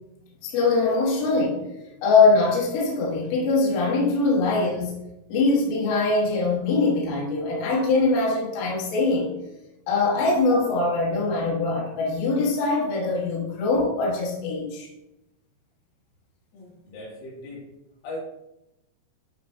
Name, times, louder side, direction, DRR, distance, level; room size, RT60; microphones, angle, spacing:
voice 1, 0.4-1.6 2.0-5.0 5.3-9.3 9.9-14.9, left 3 dB, 60° left, -4 dB, 2.5 m, -22 dB
voice 2, 16.5-17.7 18.0-18.2, left 2 dB, 80° left, -6 dB, 4.9 m, -38 dB
9.3 x 5.2 x 2.7 m, 0.91 s
omnidirectional pair, 5.6 m